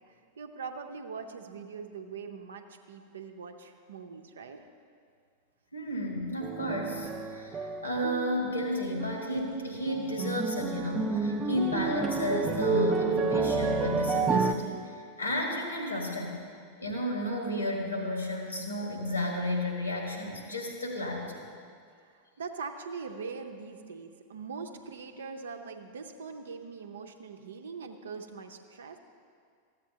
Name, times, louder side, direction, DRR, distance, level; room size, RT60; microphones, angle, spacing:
voice 1, 0.1-4.7 22.0-29.0, right 5 dB, 65° right, 5 dB, 0.6 m, -42 dB
voice 2, 5.7-16.4 16.8-21.4, left 1 dB, 80° left, 1 dB, 1.6 m, -32 dB
sound 1, 6.4-8.7 9.0-9.5 9.9-14.5, right 4 dB, 20° right, 0.5 m, -30 dB
14.0 x 8.1 x 2.8 m, 2.1 s
figure-of-eight pair, 90°, 0 cm